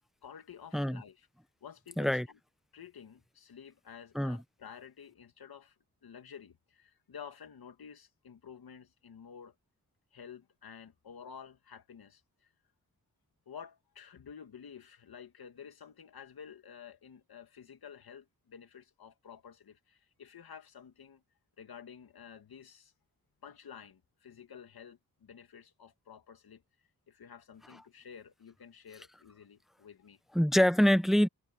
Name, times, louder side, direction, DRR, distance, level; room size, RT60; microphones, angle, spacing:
voice 1, 0.2-1.3 1.6-2.4 2.7-5.7 6.0-9.5 10.1-12.5 13.5-21.2 21.6-22.9 23.4-30.2, left 7 dB, 80° left, 2.6 m, -51 dB
voice 2, 30.3-31.3, equal, ahead, 1.0 m, -25 dB
cardioid pair, 55°, 36 cm